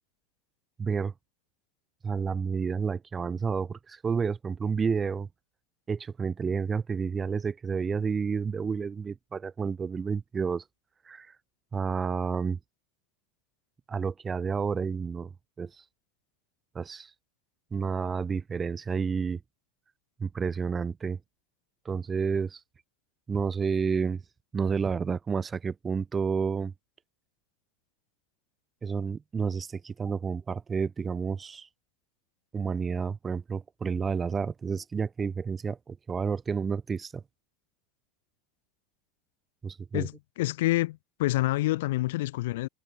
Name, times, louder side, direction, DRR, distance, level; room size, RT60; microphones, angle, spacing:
voice 1, 0.8-1.1 2.0-5.3 5.9-10.6 11.0-11.3 11.7-12.6 13.9-15.3 15.6-15.8 16.7-17.1 17.7-19.4 20.2-21.2 21.8-22.6 23.3-24.2 24.5-26.7 28.8-31.7 32.5-37.2 39.6-40.1, right 5 dB, 20° right, 4.7 m, -30 dB
voice 2, 39.9-42.7, left 18 dB, 75° left, 2.2 m, -27 dB
hypercardioid pair, 110°, 0 cm